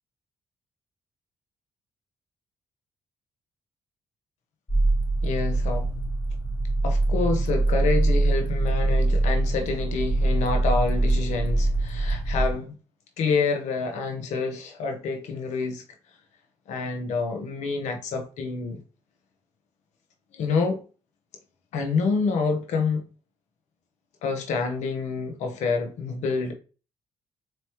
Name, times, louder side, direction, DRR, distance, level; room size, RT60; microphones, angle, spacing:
sound 1, 4.7-12.5, right 2 dB, 15° left, 2.3 m, -23 dB
voice 1, 5.2-5.9 6.8-12.8 13.2-15.8 16.7-18.8 20.3-20.8 21.7-23.0 24.2-26.5, left 4 dB, 80° left, 1.0 m, -27 dB
4.2 x 3.1 x 3.0 m
supercardioid pair, 60°, 12 cm